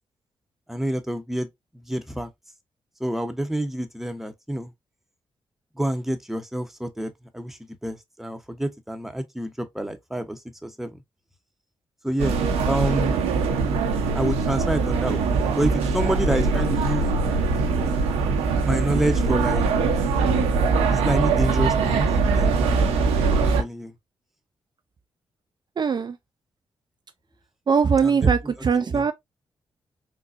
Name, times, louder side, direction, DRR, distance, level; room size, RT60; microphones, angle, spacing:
voice 1, 0.7-1.5 1.7-2.3 3.0-4.7 5.8-11.0 12.0-12.4 12.7-13.2 14.1-17.1 18.7-19.7 20.9-22.1 22.3-23.0 23.3-23.9 28.0-29.1, right 1 dB, 5° right, 0.9 m, -28 dB
sound 1, 12.2-23.6, right 4 dB, 85° right, 0.8 m, -22 dB
voice 2, 25.8-26.2 27.7-29.1, right 6 dB, 45° right, 0.4 m, -21 dB
3.9 x 2.3 x 2.5 m
supercardioid pair, 45°, 11 cm